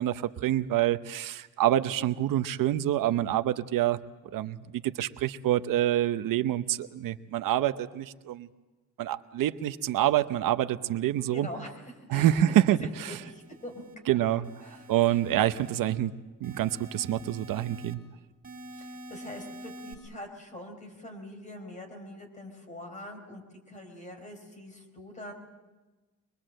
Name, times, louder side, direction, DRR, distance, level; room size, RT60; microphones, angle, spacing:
voice 1, 0.0-4.0 4.2-8.5 9.0-11.5 12.1-13.2 14.1-14.5 14.9-16.1 16.4-18.0, right 12 dB, 75° right, 11 dB, 0.8 m, -27 dB
voice 2, 11.3-11.7 12.1-12.3 12.8-13.8 14.6-15.2 18.7-23.4 23.7-25.3, left 1 dB, 20° left, 4 dB, 4.2 m, -44 dB
sound 1, 12.8-13.9 14.4-16.0 16.4-17.9 18.4-19.9, equal, 25° right, 3.0 m, -46 dB
23.5 x 22.0 x 7.7 m, 1.2 s
cardioid pair, 155°, 33 cm